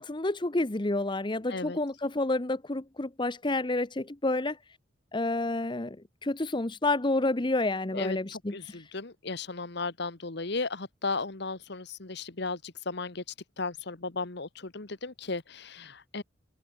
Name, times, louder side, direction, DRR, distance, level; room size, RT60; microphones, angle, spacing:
voice 1, 0.0-4.6 5.1-6.0 6.2-8.8, left 2 dB, 25° left, 0.9 m, -29 dB
voice 2, 7.9-13.2 13.6-16.2, left 3 dB, 60° left, 1.5 m, -35 dB
head